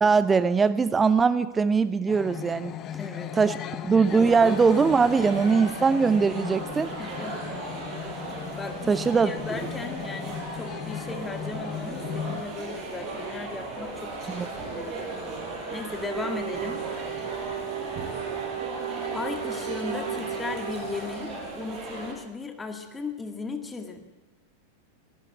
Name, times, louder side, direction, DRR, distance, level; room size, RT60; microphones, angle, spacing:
voice 1, 0.0-2.7 3.3-3.6 3.8-6.9 8.9-9.3 14.3-14.5, right 5 dB, 15° right, 16 dB, 0.6 m, -21 dB
sound 1, 2.1-12.4, left 9 dB, 30° left, 1.1 m, -37 dB
voice 2, 3.0-3.3 3.6-4.0 7.0-7.5 8.6-15.1 15.7-16.8 19.1-24.0, left 4 dB, 15° left, 5 dB, 2.0 m, -37 dB
sound 2, 4.1-22.1, right 3 dB, 35° right, 5.5 m, -36 dB
Wind instrument woodwind instrument, 16.0-21.1, right 10 dB, 65° right, 3.9 m, -35 dB
22.5 x 16.0 x 7.9 m, 1.2 s
figure-of-eight pair, 90°, 0 cm